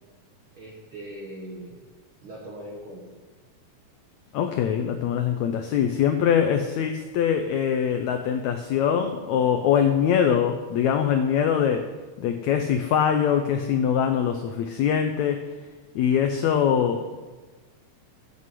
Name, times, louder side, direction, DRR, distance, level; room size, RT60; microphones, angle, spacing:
voice 1, 0.5-1.8 2.2-3.1, right 1 dB, 50° right, -2 dB, 1.6 m, -40 dB
voice 2, 4.3-11.9 12.2-15.5 15.9-17.2, left 8 dB, 80° left, 6 dB, 1.6 m, -23 dB
7.8 x 7.4 x 8.4 m, 1.3 s
omnidirectional pair, 4.0 m